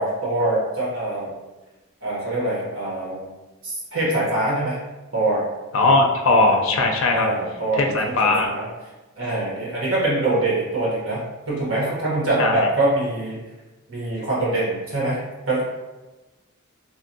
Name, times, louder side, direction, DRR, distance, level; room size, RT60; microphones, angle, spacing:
voice 1, 0.0-1.3 2.0-3.3 3.6-4.8 5.1-5.4 5.8-5.9 6.3-6.6 7.1-8.7 9.2-13.4 13.9-15.2 15.5-15.6, right 2 dB, 70° right, -6 dB, 1.1 m, -24 dB
voice 2, 5.7-7.3 7.7-8.5 12.4-12.7, left 2 dB, 70° left, 2 dB, 0.4 m, -19 dB
2.7 x 2.6 x 2.6 m, 1.1 s
head